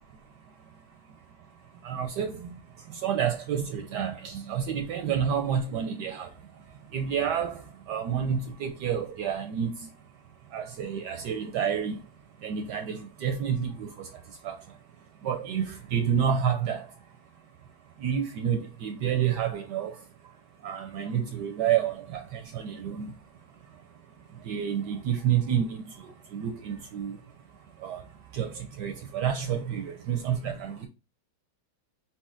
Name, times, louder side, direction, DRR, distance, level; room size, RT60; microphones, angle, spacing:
voice 1, 1.8-2.5 2.9-6.3 6.9-7.6 7.9-9.7 10.5-12.0 12.4-14.1 14.4-14.6 15.2-16.8 18.0-19.9 20.6-23.1 24.5-25.7 26.0-27.2 27.8-28.0 28.3-30.9, right 8 dB, 75° right, 1.0 m, -29 dB
4.4 x 4.2 x 2.4 m
omnidirectional pair, 2.2 m